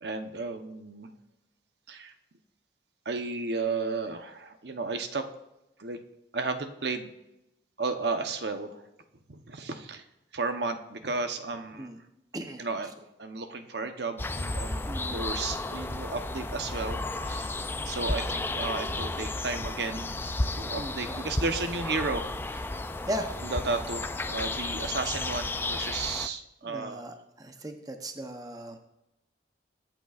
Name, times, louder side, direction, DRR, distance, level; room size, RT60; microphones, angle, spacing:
voice 1, 0.0-1.1 1.9-2.1 3.0-5.3 5.8-6.0 6.3-7.1 7.8-8.8 9.3-10.0 10.3-11.9 12.6-17.6 17.8-22.7 23.4-27.0, right 3 dB, 70° right, 7 dB, 0.9 m, -33 dB
sound 1, 14.2-26.3, left 2 dB, 10° left, 0.4 m, -33 dB
voice 2, 14.9-15.2 20.8-21.2 23.1-23.3 26.6-27.1 27.4-28.8, equal, 20° right, 5 dB, 0.8 m, -37 dB
22.0 x 9.0 x 2.5 m, 0.91 s
head